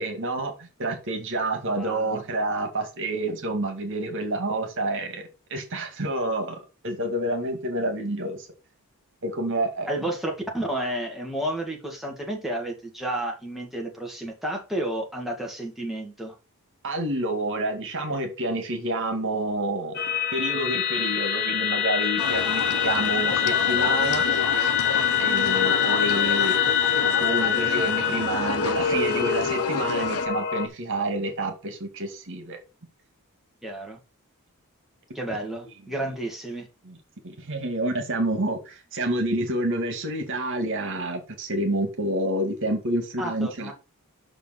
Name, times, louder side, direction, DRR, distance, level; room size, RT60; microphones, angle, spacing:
voice 1, 0.0-8.5 9.2-9.9 16.8-20.0 20.3-24.3 25.2-26.6 27.2-32.6 35.6-35.7 36.8-37.0 37.2-43.7, right 1 dB, 60° right, 2.0 m, -28 dB
voice 2, 1.7-2.2 9.9-16.3 33.6-34.0 35.1-36.7 43.2-43.7, right 1 dB, ahead, 2.1 m, -31 dB
sound 1, 19.9-30.7, left 8 dB, 50° left, 1.0 m, -25 dB
sound 2, 22.2-30.3, left 5 dB, 75° left, 0.7 m, -30 dB
6.0 x 5.1 x 6.1 m
head